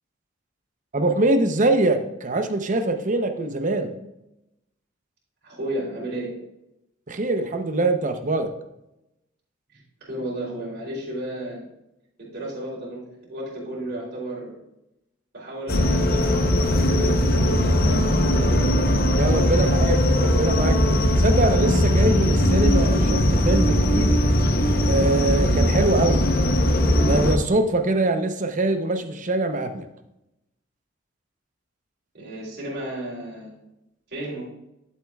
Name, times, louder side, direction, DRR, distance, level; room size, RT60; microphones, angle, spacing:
voice 1, 0.9-3.9 7.1-8.5 19.1-24.1 24.8-26.2 27.0-29.8, right 2 dB, 40° right, 7 dB, 0.8 m, -23 dB
voice 2, 5.4-6.3 9.7-11.6 12.2-13.0 13.3-14.6 15.3-18.7 19.5-19.7 20.8-21.0 32.1-33.6 34.1-34.5, right 1 dB, 60° right, -5 dB, 3.3 m, -33 dB
sound 1, 15.7-27.4, left 1 dB, 55° left, 0.8 m, -19 dB
11.5 x 7.5 x 2.4 m, 0.89 s
head